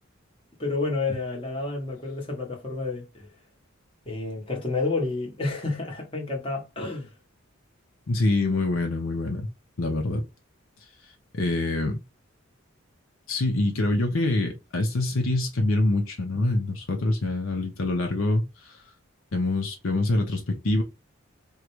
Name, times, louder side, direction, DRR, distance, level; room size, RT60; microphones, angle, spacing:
voice 1, 0.6-3.3 4.1-7.1, left 3 dB, 25° left, 1.0 m, -30 dB
voice 2, 8.1-9.5 9.8-10.2 11.3-12.0 13.3-18.8 19.3-20.8, left 2 dB, 70° left, 0.7 m, -25 dB
3.7 x 2.2 x 3.0 m
head